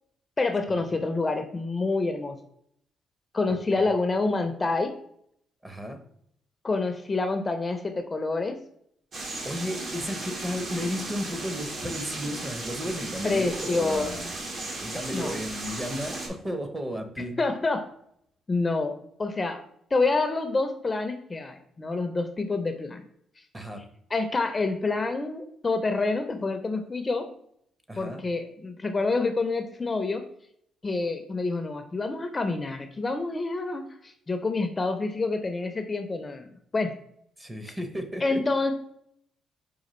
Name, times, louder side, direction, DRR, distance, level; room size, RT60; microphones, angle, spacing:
voice 1, 0.4-2.4 3.3-4.9 6.6-8.6 13.2-14.1 15.1-15.4 17.4-17.8 18.5-18.9 19.2-19.6 19.9-23.0 24.1-27.3 28.0-30.2 30.8-36.9 38.2-38.7, left 3 dB, 25° left, 7 dB, 0.4 m, -27 dB
voice 2, 3.5-3.9 5.6-6.0 9.4-14.3 14.8-17.4 23.5-23.8 27.9-28.2 37.4-38.4, equal, 15° right, 7 dB, 0.7 m, -34 dB
sound 1, 9.1-16.3, right 2 dB, 55° right, 0.9 m, -36 dB
5.0 x 2.3 x 3.0 m, 0.70 s
cardioid pair, 90°, 0 cm